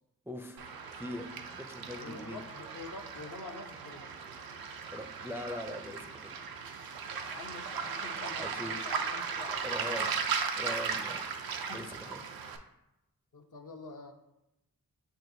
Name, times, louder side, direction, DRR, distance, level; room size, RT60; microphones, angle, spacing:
voice 1, 0.3-1.2 1.5-2.4 4.9-6.4 8.4-8.7 9.6-10.1 10.5-11.2 11.7-12.2, left 1 dB, 5° right, 4 dB, 0.4 m, -41 dB
Waves surf, 0.6-12.6, right 6 dB, 90° right, 0.5 m, -37 dB
voice 2, 2.0-4.1 7.3-10.3 10.9-11.1 11.7-11.9 12.2-12.3 13.3-14.1, left 4 dB, 60° left, 3 dB, 0.7 m, -47 dB
7.6 x 2.6 x 2.6 m, 0.88 s
cardioid pair, 50°, 35 cm